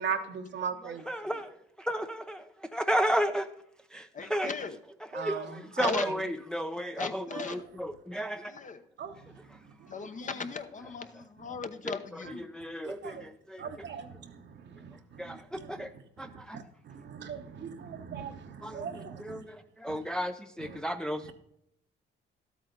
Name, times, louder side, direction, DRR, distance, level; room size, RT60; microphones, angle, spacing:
voice 1, 0.0-1.0 5.1-6.2 7.3-7.6 9.0-9.1 9.9-10.1 11.5-11.6 12.2-12.3 12.8-13.2 13.6-15.9 16.2-19.4 19.9-20.0 20.6-20.8, right 7 dB, 65° right, 1.1 m, -39 dB
voice 2, 0.8-1.5 1.8-2.4 2.7-3.5 3.9-4.5 5.1-8.5 11.8-13.6 15.2-15.9 16.2-16.6 18.6-18.9 19.2-21.3, equal, 5° left, 0.6 m, -33 dB
voice 3, 4.1-4.8 5.8-6.1 7.0-7.6 8.2-8.8 9.9-12.5, left 5 dB, 40° left, 0.9 m, -37 dB
12.5 x 8.4 x 3.9 m
cardioid pair, 90°, 20 cm